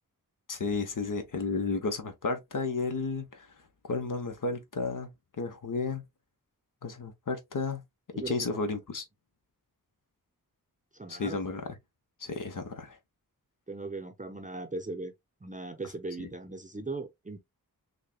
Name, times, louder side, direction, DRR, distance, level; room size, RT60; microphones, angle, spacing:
voice 1, 0.5-3.5 3.8-5.1 5.4-6.0 6.8-7.8 8.3-9.0 11.1-11.6 12.2-13.0 16.2-16.3, left 4 dB, 60° left, 0.9 m, -32 dB
voice 2, 8.1-8.6 10.9-11.4 13.7-15.1 15.4-17.4, right 3 dB, 20° right, 0.6 m, -38 dB
6.5 x 2.2 x 2.2 m
wide cardioid pair, 110°, 36 cm